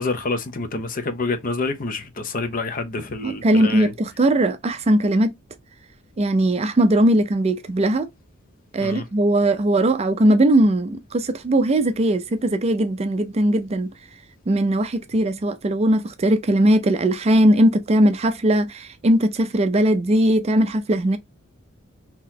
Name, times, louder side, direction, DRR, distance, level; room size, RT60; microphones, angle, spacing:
voice 1, 0.0-3.9 8.8-9.1, left 3 dB, 40° left, 0.7 m, -27 dB
voice 2, 3.2-5.3 6.2-8.1 8.7-13.9 14.5-21.2, right 1 dB, 30° right, 0.4 m, -19 dB
3.8 x 2.9 x 2.7 m
head